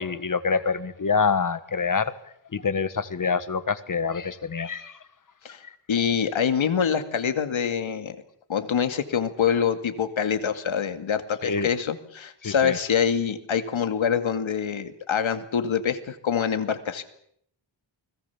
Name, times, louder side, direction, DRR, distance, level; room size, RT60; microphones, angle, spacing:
voice 1, 0.0-2.1 2.5-5.0 11.4-11.7 12.4-12.8, left 5 dB, 45° left, 12 dB, 1.6 m, -26 dB
voice 2, 5.9-8.2 8.5-17.0, left 7 dB, 85° left, 8 dB, 2.4 m, -25 dB
29.5 x 21.0 x 7.2 m, 0.70 s
wide cardioid pair, 160°, 46 cm